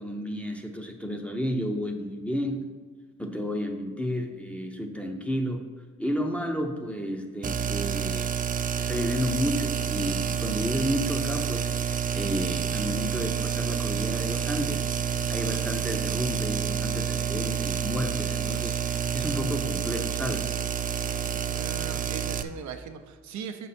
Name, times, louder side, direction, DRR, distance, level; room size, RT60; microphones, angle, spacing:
voice 1, 0.0-2.7 3.2-5.7 6.0-8.4 8.8-11.7 12.1-14.9 15.3-20.5, equal, 5° left, 2 dB, 0.7 m, -31 dB
sound 1, 7.4-22.4, right 7 dB, 30° right, 0.4 m, -29 dB
voice 2, 21.5-23.7, right 7 dB, 65° right, 6 dB, 0.6 m, -39 dB
6.0 x 5.4 x 4.2 m, 1.5 s
cardioid pair, 90°, 30 cm